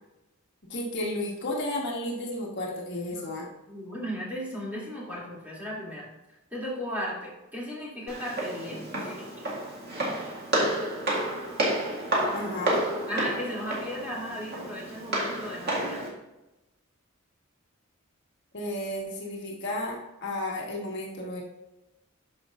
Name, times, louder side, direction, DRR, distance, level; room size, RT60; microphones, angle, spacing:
voice 1, 0.7-3.5 12.3-12.8 18.5-21.4, left 1 dB, 55° left, -2 dB, 1.4 m, -33 dB
voice 2, 3.7-6.1 6.5-9.3 13.1-16.0, equal, 10° right, -7 dB, 2.6 m, -35 dB
Walk footsteps, 8.1-16.1, right 1 dB, 50° right, 2.0 m, -30 dB
12.0 x 5.2 x 2.5 m, 0.98 s
head